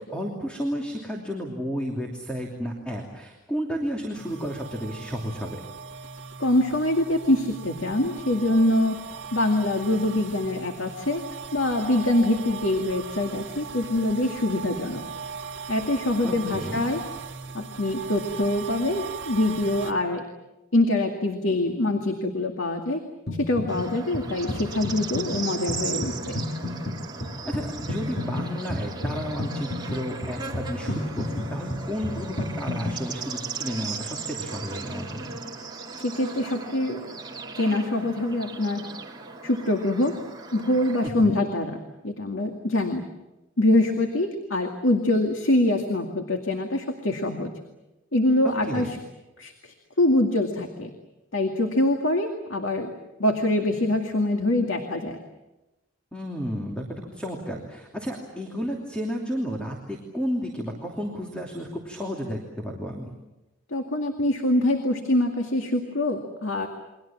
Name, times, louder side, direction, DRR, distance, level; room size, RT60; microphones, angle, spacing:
voice 1, 0.0-5.6 16.2-16.8 27.4-35.3 41.0-41.4 48.4-49.0 56.1-63.1, equal, 5° left, 0 dB, 2.9 m, -32 dB
sound 1, 4.1-19.9, right 6 dB, 60° right, 1.9 m, -39 dB
voice 2, 6.4-9.0 9.3-11.2 11.5-15.0 15.7-17.0 17.5-20.2 20.7-23.0 23.4-26.4 36.0-37.0 37.6-38.8 39.4-40.2 40.5-41.8 42.0-43.0 43.6-47.5 48.1-49.0 49.4-50.9 51.3-52.9 53.2-55.2 63.7-66.7, left 1 dB, 75° left, 4 dB, 2.2 m, -24 dB
sound 2, 23.3-23.9 24.1-33.0, left 1 dB, 50° left, 2.6 m, -32 dB
Bird / Insect, 23.7-41.1, right 4 dB, 20° right, 2.4 m, -37 dB
29.5 x 23.5 x 7.4 m, 1.0 s
head